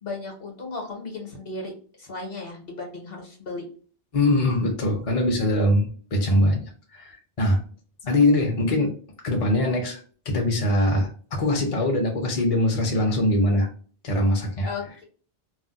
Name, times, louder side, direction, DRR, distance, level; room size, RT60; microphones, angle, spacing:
voice 1, 0.0-1.7 2.0-3.6 8.0-8.1 14.6-15.0, left 3 dB, 60° left, 1 dB, 1.0 m, -35 dB
voice 2, 4.1-6.6 6.9-7.6 8.1-8.9 9.2-10.0 10.3-13.7 14.0-14.7, left 1 dB, 40° left, 1 dB, 0.5 m, -22 dB
2.4 x 2.1 x 3.8 m, 0.42 s
omnidirectional pair, 1.1 m